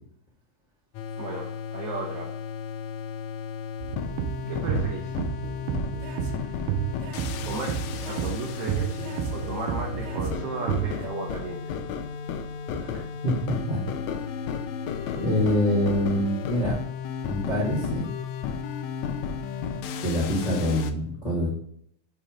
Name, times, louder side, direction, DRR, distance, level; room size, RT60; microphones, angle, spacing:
sound 1, 0.9-20.9, left 6 dB, 90° left, 1.6 m, -33 dB
voice 1, 1.2-2.3 4.5-5.2 7.4-11.6 15.0-15.2, right 3 dB, 70° right, -2 dB, 1.5 m, -35 dB
sound 2, 3.8-11.1, right 10 dB, 85° right, 2.5 m, -31 dB
voice 2, 12.7-13.8 15.2-16.8 17.3-18.1 20.0-21.5, left 1 dB, 70° left, -6 dB, 0.4 m, -25 dB
6.9 x 3.1 x 5.0 m, 0.67 s
omnidirectional pair, 3.9 m